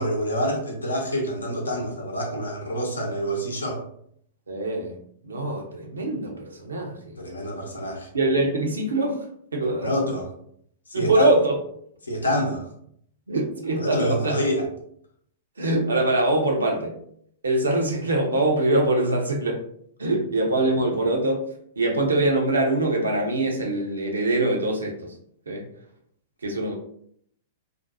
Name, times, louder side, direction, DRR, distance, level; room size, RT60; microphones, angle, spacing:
voice 1, 0.0-3.8 7.2-8.1 9.8-10.3 10.9-11.3 12.0-12.7 13.8-14.7, equal, 85° left, 0 dB, 0.7 m, -27 dB
voice 2, 4.5-5.0 5.2-7.1 8.1-9.3 9.5-9.9 10.9-11.6 13.3-14.3 15.6-16.9 17.4-19.6 20.0-21.4 21.8-24.9 25.5-25.6 26.4-26.7, right 2 dB, 85° right, 1 dB, 0.6 m, -23 dB
2.6 x 2.2 x 2.5 m, 0.67 s
figure-of-eight pair, 105°, 0 cm